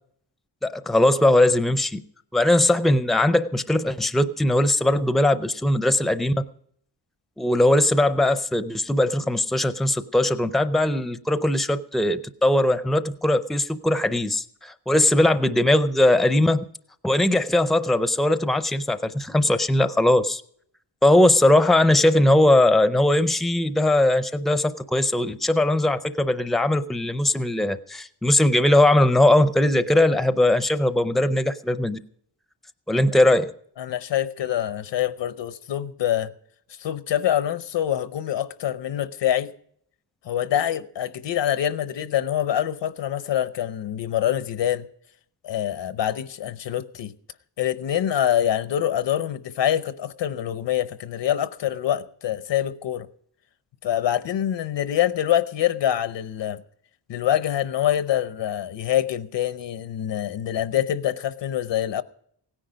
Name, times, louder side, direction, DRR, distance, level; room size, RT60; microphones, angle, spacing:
voice 1, 0.6-2.0 2.3-6.3 7.4-16.6 17.0-20.4 21.0-32.0 32.9-33.5, left 1 dB, ahead, 0.4 m, -20 dB
voice 2, 33.8-36.3 36.8-39.5 40.2-44.9 45.4-47.1 47.6-53.1 53.8-56.6 57.1-62.0, left 11 dB, 85° left, 0.8 m, -25 dB
17.0 x 10.0 x 5.1 m
wide cardioid pair, 155°, 42 cm